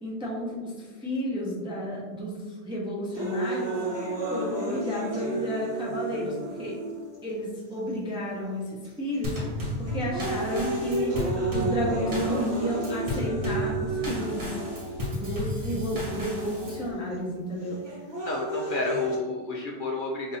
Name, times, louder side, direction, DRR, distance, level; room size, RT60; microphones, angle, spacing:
voice 1, 0.0-0.7 1.0-2.4 2.6-3.8 4.3-6.8 7.2-9.4 9.8-11.2 11.5-14.5 15.0-17.8, equal, 5° right, -4 dB, 0.5 m, -31 dB
sound 1, 3.1-7.2 7.9-8.0 8.8-9.2 9.6-15.2 16.1-16.2 17.6-19.2, right 2 dB, 25° right, 0.9 m, -32 dB
Drum kit / Snare drum / Bass drum, 9.2-16.9, left 1 dB, 55° right, 1.1 m, -33 dB
voice 2, 18.2-20.4, left 2 dB, 55° left, -1 dB, 0.7 m, -30 dB
5.5 x 2.6 x 2.7 m, 1.4 s
omnidirectional pair, 1.1 m